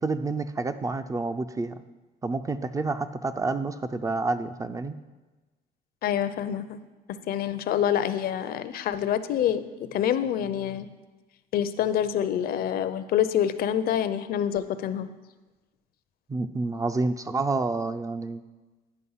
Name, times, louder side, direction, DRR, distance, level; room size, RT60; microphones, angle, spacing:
voice 1, 0.0-1.8 2.2-5.0 16.3-18.4, right 3 dB, 20° right, 10 dB, 0.4 m, -29 dB
voice 2, 6.0-6.8 7.1-9.6 9.9-10.9 11.5-15.1, left 10 dB, 60° left, 12 dB, 0.6 m, -26 dB
10.0 x 5.3 x 5.6 m, 1.2 s
cardioid pair, 110°, 17 cm